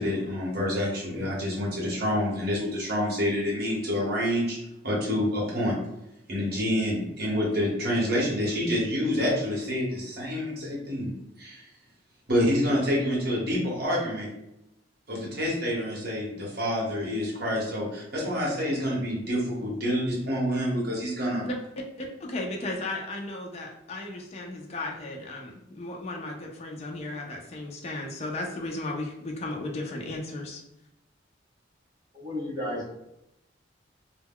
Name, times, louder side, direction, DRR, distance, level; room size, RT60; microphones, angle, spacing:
voice 1, 0.0-4.6 4.8-5.8 6.3-11.1 11.4-11.7 12.3-14.3 15.1-21.4, equal, 55° right, -4 dB, 0.9 m, -27 dB
voice 2, 22.0-30.6, left 2 dB, 35° left, 1 dB, 0.4 m, -35 dB
voice 3, 32.1-32.9, left 1 dB, 20° right, -5 dB, 0.8 m, -32 dB
2.1 x 2.1 x 3.5 m, 0.85 s
head